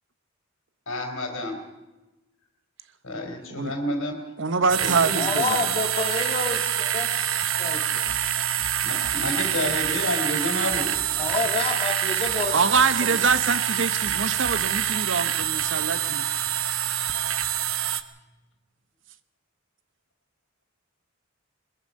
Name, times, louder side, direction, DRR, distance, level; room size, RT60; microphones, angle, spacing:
voice 1, 0.9-1.6 3.0-4.3 4.8-5.3 5.7-5.8 8.8-11.0, left 1 dB, 80° left, 4 dB, 3.7 m, -30 dB
voice 2, 4.4-5.7 12.5-16.2, right 4 dB, 65° right, 12 dB, 1.1 m, -24 dB
sound 1, 4.7-18.0, right 10 dB, 90° right, 1.1 m, -26 dB
voice 3, 5.2-7.1 7.6-8.1 11.2-12.7 13.0-13.2, left 3 dB, 30° left, 4 dB, 2.0 m, -29 dB
22.0 x 21.5 x 5.5 m, 1.0 s
head